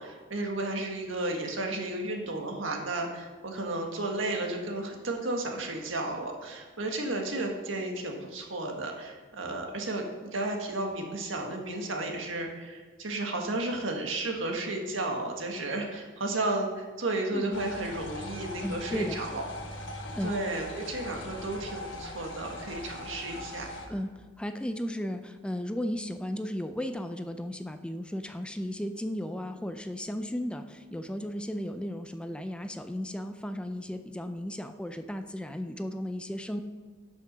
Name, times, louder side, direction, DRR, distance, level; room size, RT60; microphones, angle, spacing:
voice 1, 0.0-19.5 20.2-23.7, right 2 dB, 80° right, 2 dB, 1.7 m, -33 dB
sound 1, 17.5-23.9, left 1 dB, 70° left, 1.5 m, -40 dB
voice 2, 18.6-19.2 20.1-20.4 23.9-36.6, equal, 5° left, 8 dB, 0.4 m, -35 dB
11.5 x 6.1 x 5.4 m, 1.4 s
head